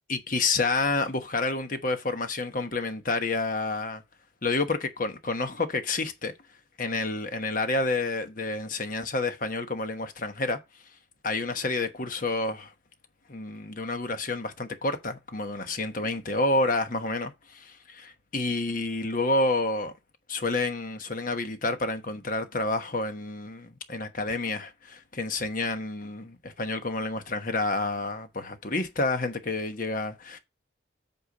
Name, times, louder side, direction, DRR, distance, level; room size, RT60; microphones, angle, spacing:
voice 1, 0.1-4.0 4.4-6.3 6.8-10.6 11.2-12.7 13.3-19.9 20.3-30.4, left 2 dB, 45° left, 1.1 m, -29 dB
8.4 x 4.5 x 5.1 m
head